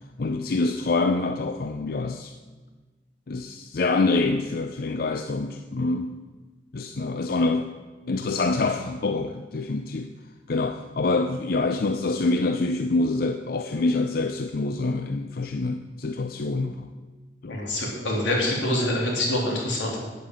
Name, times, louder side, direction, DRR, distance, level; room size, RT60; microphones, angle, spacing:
voice 1, 0.2-2.3 3.3-6.1 6.7-7.7 8.0-10.1 10.5-16.9 17.4-17.6, left 3 dB, 55° left, 7 dB, 0.5 m, -26 dB
voice 2, 17.5-20.0, left 1 dB, 85° left, -3 dB, 3.4 m, -25 dB
9.3 x 8.5 x 7.6 m, 1.3 s
head